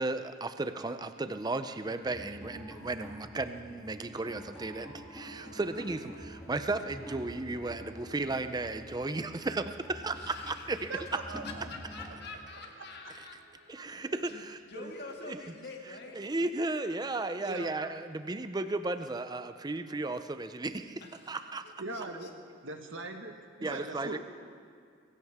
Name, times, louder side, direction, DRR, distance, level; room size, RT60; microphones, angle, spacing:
voice 1, 0.0-11.1 13.7-14.9 15.2-15.4 16.2-21.0 21.3-21.6 23.6-24.2, right 2 dB, 20° right, 10 dB, 0.5 m, -35 dB
voice 2, 1.8-2.1 10.2-13.4 13.8-14.4 14.7-16.2 21.0-21.4 21.9-22.3, left 3 dB, 55° left, 1 dB, 2.0 m, -47 dB
sound 1, 2.0-12.1, equal, 5° right, 2.5 m, -48 dB
sound 2, 4.6-16.5, right 2 dB, 90° left, 4.8 m, -58 dB
voice 3, 10.9-11.7 17.4-17.7 21.8-22.3 22.6-24.2, right 2 dB, 75° right, 4 dB, 1.5 m, -40 dB
22.5 x 16.5 x 3.6 m, 2.2 s
head